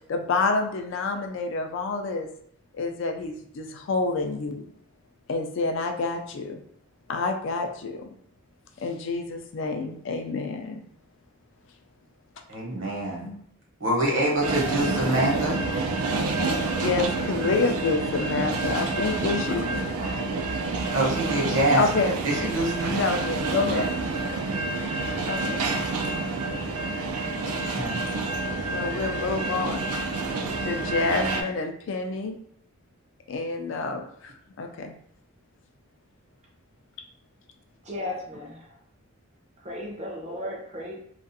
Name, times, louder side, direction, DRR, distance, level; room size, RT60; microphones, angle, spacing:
voice 1, 0.1-2.3 2.7-4.6 5.3-6.6 7.1-8.0 8.8-10.8 13.2-13.5 16.8-19.7 21.7-22.1 22.8-23.9 25.2-25.6 28.7-29.9 30.6-32.4 33.3-34.9, left 3 dB, 55° left, 4 dB, 0.3 m, -28 dB
voice 2, 12.5-13.2 13.8-15.6 20.0-20.1 20.9-23.0 27.5-28.0, right 1 dB, 60° right, -3 dB, 0.9 m, -26 dB
sound 1, 14.4-31.4, right 3 dB, 85° right, 0.4 m, -28 dB
voice 3, 37.8-38.7 39.6-41.0, left 1 dB, 30° right, -1 dB, 0.5 m, -35 dB
2.4 x 2.4 x 2.6 m, 0.67 s
head